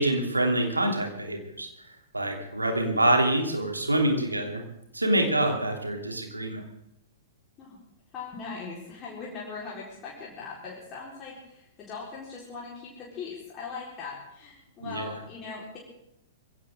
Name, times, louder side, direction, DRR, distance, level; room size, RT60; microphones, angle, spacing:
voice 1, 0.0-1.7 2.1-4.6 4.9-6.6 14.8-15.1, right 1 dB, 85° right, 3 dB, 3.1 m, -26 dB
voice 2, 8.1-15.8, left 4 dB, 25° left, -5 dB, 4.3 m, -40 dB
23.0 x 16.5 x 3.8 m, 0.81 s
figure-of-eight pair, 105°, 0 cm